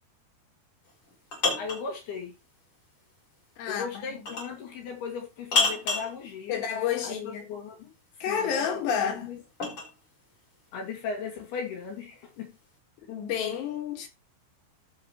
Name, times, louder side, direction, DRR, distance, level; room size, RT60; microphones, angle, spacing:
sound 1, 0.9-1.9 4.3-4.6 5.5-6.1 8.4-9.9, left 3 dB, 35° left, 4.5 m, -28 dB
voice 1, 1.6-2.4 3.7-6.6 7.0-7.9 8.2-9.4 10.7-12.6, left 5 dB, 70° left, 4.1 m, -37 dB
voice 2, 3.6-4.2 6.5-7.4 8.2-9.3 13.1-14.1, left 8 dB, 90° left, 4.0 m, -30 dB
14.0 x 5.1 x 3.1 m
omnidirectional pair, 4.7 m